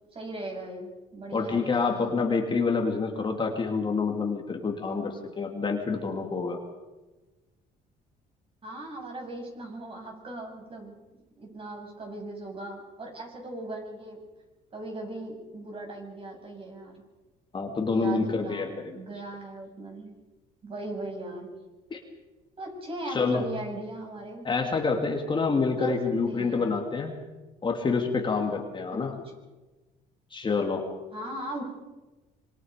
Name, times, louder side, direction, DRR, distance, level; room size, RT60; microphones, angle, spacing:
voice 1, 0.1-2.1 8.6-10.9 11.4-14.2 14.7-17.0 17.9-20.1 20.6-21.5 22.6-24.5 25.8-26.8 29.2-29.3 31.1-31.6, right 1 dB, 35° right, 1 dB, 7.5 m, -38 dB
voice 2, 1.3-6.6 17.5-19.0 21.9-22.0 23.1-23.4 24.4-27.1 27.6-29.1 30.3-30.9, left 4 dB, 30° left, 2 dB, 2.9 m, -27 dB
26.0 x 24.0 x 5.3 m, 1.1 s
cardioid pair, 110°, 17 cm